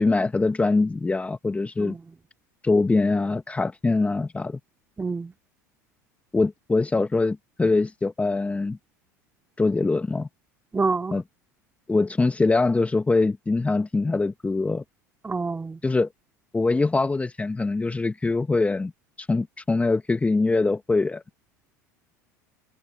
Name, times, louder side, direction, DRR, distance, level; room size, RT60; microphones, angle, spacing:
voice 1, 0.0-2.0 2.6-4.6 6.3-8.8 9.6-10.3 11.1-11.2 11.9-14.8 15.8-16.1 16.5-18.9 19.2-21.2, left 3 dB, 15° left, 1.6 m, -23 dB
voice 2, 5.0-5.3 10.7-11.2 15.2-15.8, right 4 dB, 15° right, 2.4 m, -27 dB
hypercardioid pair, 75°, 10 cm